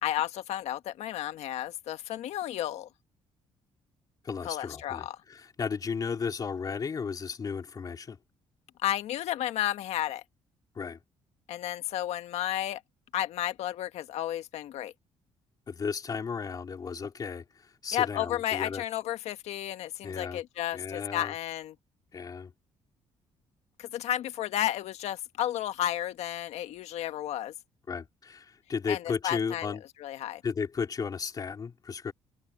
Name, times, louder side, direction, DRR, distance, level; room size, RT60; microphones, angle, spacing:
voice 1, 0.0-2.9 4.4-5.2 8.8-10.2 11.5-12.8 13.1-14.9 17.9-21.7 23.8-27.5 28.9-30.4, left 12 dB, 80° left, 1.6 m, -32 dB
voice 2, 4.2-8.2 10.7-11.0 15.7-18.8 20.0-20.4 20.7-21.3 22.1-22.5 27.9-29.8 30.4-32.1, left 5 dB, 35° left, 3.2 m, -34 dB
cardioid pair, 120°, 11 cm